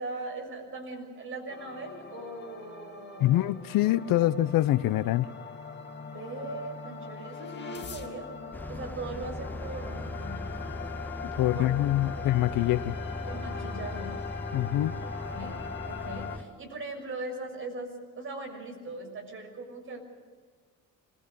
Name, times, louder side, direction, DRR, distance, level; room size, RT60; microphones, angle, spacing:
voice 1, 0.0-3.5 6.1-8.3 8.7-10.8 11.5-11.7 12.2-12.3 13.3-14.2 15.2-15.6 15.8-20.0, right 2 dB, 35° right, 3 dB, 6.5 m, -40 dB
sound 1, 1.5-16.4, left 6 dB, 30° left, 2.3 m, -41 dB
voice 2, 3.2-5.3 11.2-13.0 14.5-14.9, left 14 dB, 75° left, 16 dB, 0.8 m, -25 dB
sound 2, 8.5-16.4, left 1 dB, 5° left, 0.6 m, -39 dB
25.5 x 21.0 x 6.8 m, 1.5 s
cardioid pair, 145°, 34 cm